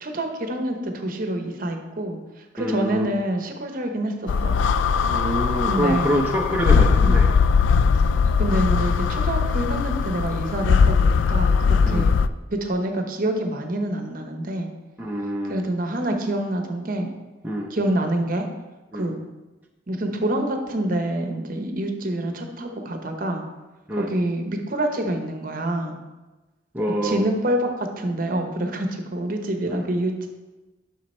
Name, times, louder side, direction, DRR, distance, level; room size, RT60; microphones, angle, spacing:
voice 1, 0.0-4.5 5.6-6.1 7.0-7.2 8.4-12.2 12.5-14.7 15.4-17.1 17.7-18.5 18.9-19.2 19.9-23.4 23.9-25.9 26.9-30.3, right 1 dB, 50° right, 4 dB, 0.9 m, -26 dB
voice 2, 2.6-3.1 5.1-7.3 11.8-12.1 15.0-15.6 17.4-17.7 18.9-19.1 23.9-24.1 26.7-27.2 29.7-29.8, equal, 10° right, -1 dB, 0.6 m, -26 dB
sound 1, 4.3-12.3, left 5 dB, 85° left, 0.3 m, -20 dB
7.4 x 6.0 x 4.3 m, 1.1 s
head